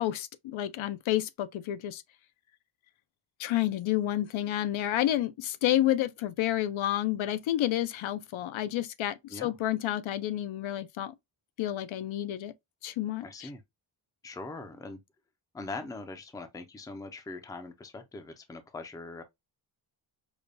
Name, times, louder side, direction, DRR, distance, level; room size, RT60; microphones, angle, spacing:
voice 1, 0.0-2.0 3.4-11.1 11.6-12.5 12.8-13.5, left 13 dB, 80° left, 0.6 m, -30 dB
voice 2, 13.2-13.6 14.2-15.0 15.5-19.2, left 3 dB, 10° left, 0.4 m, -41 dB
4.9 x 2.2 x 2.5 m
wide cardioid pair, 170°, 46 cm